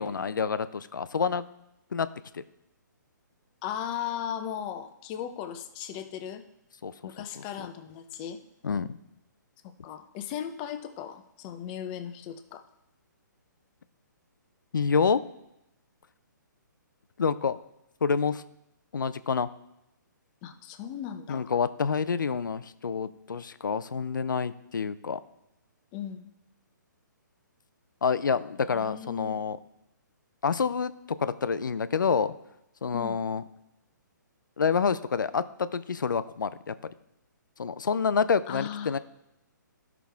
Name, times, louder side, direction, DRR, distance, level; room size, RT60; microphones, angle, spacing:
voice 1, 0.0-1.4 1.9-2.1 2.3-2.4 6.8-6.9 7.6-7.7 8.6-9.0 14.7-15.2 17.2-17.6 18.0-18.4 18.9-19.5 21.3-25.2 28.0-29.6 30.4-30.9 31.2-32.3 32.8-33.4 34.6-36.9 37.6-39.0, left 6 dB, 75° left, 14 dB, 0.5 m, -27 dB
voice 2, 3.6-6.4 7.0-8.4 9.8-12.6 20.4-21.5 25.9-26.3 28.7-29.3 32.9-33.2 38.5-38.9, left 9 dB, 30° left, 8 dB, 0.8 m, -37 dB
12.5 x 6.0 x 3.5 m, 0.88 s
figure-of-eight pair, 135°, 11 cm